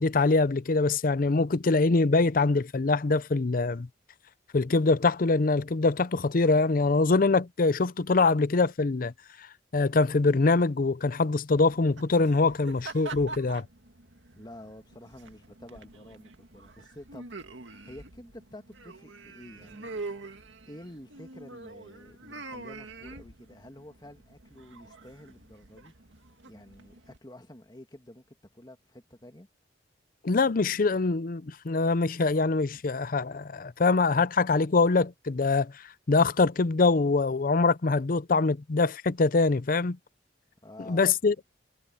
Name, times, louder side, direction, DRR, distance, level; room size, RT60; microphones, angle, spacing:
voice 1, 0.0-3.9 4.5-9.1 9.4-9.5 9.7-13.7 30.2-40.0 40.9-41.3, left 3 dB, 50° left, 0.6 m, -24 dB
sound 1, 11.6-27.2, right 3 dB, 85° right, 2.1 m, -45 dB
voice 2, 14.4-17.3 17.6-20.0 20.7-25.9 26.5-29.5 40.6-41.2, left 1 dB, 20° left, 2.1 m, -49 dB
head